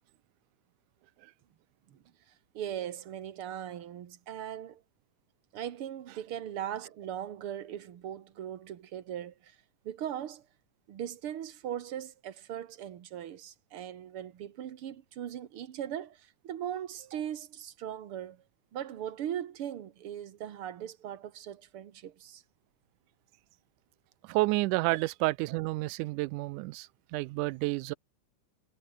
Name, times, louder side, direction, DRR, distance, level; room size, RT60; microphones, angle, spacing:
voice 1, 2.5-4.8 5.5-9.6 9.8-10.4 10.9-18.4 18.7-22.4, right 10 dB, 55° right, 2.0 m, -39 dB
voice 2, 24.2-27.9, right 21 dB, 85° right, 2.0 m, -30 dB
omnidirectional pair, 3.6 m